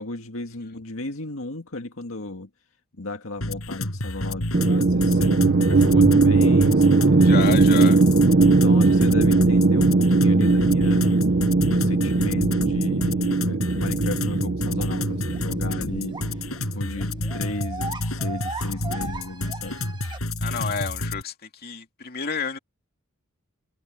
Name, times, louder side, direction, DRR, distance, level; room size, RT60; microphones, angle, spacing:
voice 1, 0.0-2.5 3.0-7.4 8.6-11.2 11.6-16.4 16.7-19.8, left 2 dB, 75° left, 2.0 m, -35 dB
sound 1, 3.4-21.2, left 1 dB, 90° left, 7.8 m, -30 dB
sound 2, 4.5-16.7, right 3 dB, 50° right, 0.7 m, -19 dB
voice 2, 7.2-8.1 20.4-22.6, left 5 dB, 50° left, 2.6 m, -30 dB
sound 3, 14.8-14.9 15.3-15.4 16.1-16.3 16.5-16.6 16.8-20.2, right 3 dB, 20° right, 1.5 m, -37 dB
head